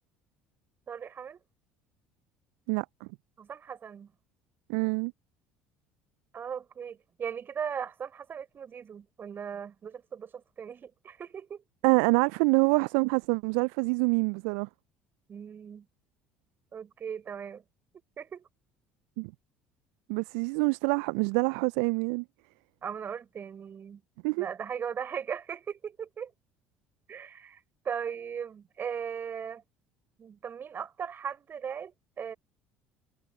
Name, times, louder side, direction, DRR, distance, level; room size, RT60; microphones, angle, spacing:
voice 1, 0.9-1.4 3.4-4.1 6.3-11.6 15.3-15.8 16.7-17.6 18.2-18.5 22.8-24.0 24.4-26.3 27.1-29.6 30.2-32.3, right 7 dB, 40° right, 5.0 m, -38 dB
voice 2, 2.7-3.1 4.7-5.1 11.8-14.7 19.2-19.3 20.1-22.2 24.2-24.5, right 33 dB, 65° right, 0.4 m, -26 dB
hypercardioid pair, 60°, 6 cm